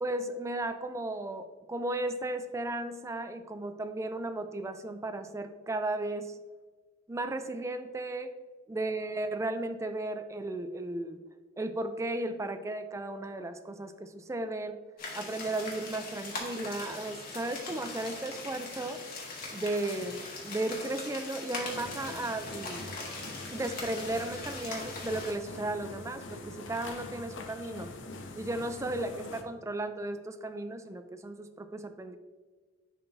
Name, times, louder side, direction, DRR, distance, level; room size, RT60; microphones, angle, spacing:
voice 1, 0.0-6.4 7.1-8.3 8.7-11.3 11.6-14.8 15.1-19.0 19.5-22.9 23.5-27.9 28.4-32.2, right 2 dB, 15° right, 9 dB, 0.3 m, -35 dB
sound 1, 15.0-25.3, left 3 dB, 50° left, 1.5 m, -41 dB
sound 2, 21.5-29.4, left 2 dB, 85° left, 0.7 m, -44 dB
10.5 x 3.9 x 2.6 m, 1.4 s
head